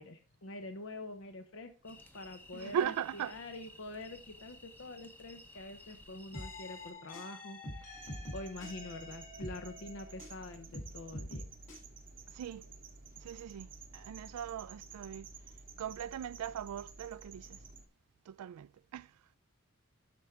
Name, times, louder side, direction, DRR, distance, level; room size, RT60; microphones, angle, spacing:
voice 1, 0.0-11.5, left 2 dB, 60° left, 0.7 m, -46 dB
sound 1, 1.8-6.9, left 1 dB, 10° left, 0.7 m, -56 dB
voice 2, 2.5-3.4 12.3-12.7 13.2-15.3 15.8-17.6 18.3-19.1, right 9 dB, 85° right, 0.3 m, -39 dB
sound 2, 6.3-10.4 10.7-11.8, left 1 dB, 35° left, 3.0 m, -46 dB
sound 3, 7.9-17.8, right 4 dB, 40° right, 0.7 m, -52 dB
12.0 x 4.6 x 3.6 m
head